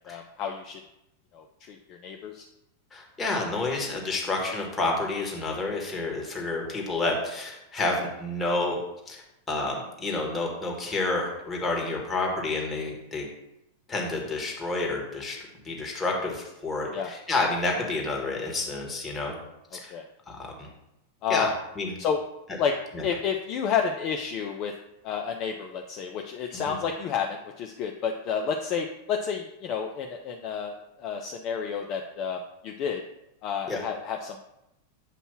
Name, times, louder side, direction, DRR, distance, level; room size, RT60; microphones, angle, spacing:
voice 1, 0.1-0.8 1.3-2.5 16.9-17.1 19.9-20.0 21.2-21.5 22.0-22.2 22.6-22.7 23.0-24.7 25.0-30.7 31.0-33.0 33.4-34.4, left 7 dB, 40° left, 3 dB, 0.5 m, -30 dB
voice 2, 2.9-8.8 9.1-13.2 13.9-15.4 15.6-19.4 19.7-19.9 20.3-20.7 21.3-21.5 21.7-21.9 22.9-23.0 26.5-26.8 33.7-33.8, left 2 dB, 15° left, -1 dB, 1.6 m, -29 dB
7.4 x 2.7 x 5.7 m, 0.87 s
figure-of-eight pair, 90°, 0 cm